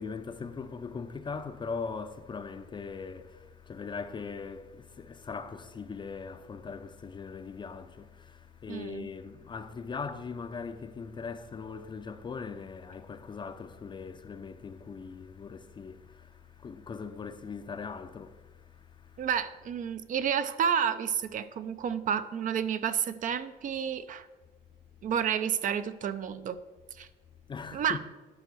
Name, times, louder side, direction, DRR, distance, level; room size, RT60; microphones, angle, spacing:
voice 1, 0.0-19.3 27.5-28.0, left 5 dB, 30° left, 0.5 m, -40 dB
voice 2, 8.7-9.1 19.2-24.3 25.0-26.6 26.9-27.1 27.7-28.0, right 8 dB, 50° right, 0.6 m, -30 dB
10.5 x 4.5 x 6.2 m
cardioid pair, 110°, 17 cm